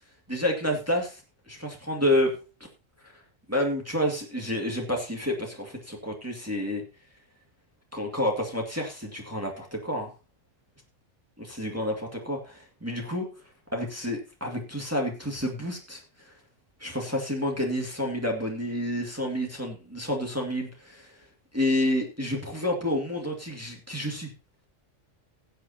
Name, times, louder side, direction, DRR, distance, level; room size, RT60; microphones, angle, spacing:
voice 1, 0.3-1.2 1.5-2.3 3.0-3.1 3.5-6.8 7.9-10.1 11.5-13.3 13.7-16.3 16.8-21.1 21.5-24.3, left 1 dB, 10° right, 0 dB, 2.1 m, -29 dB
18.0 x 7.9 x 2.9 m, 0.32 s
omnidirectional pair, 1.3 m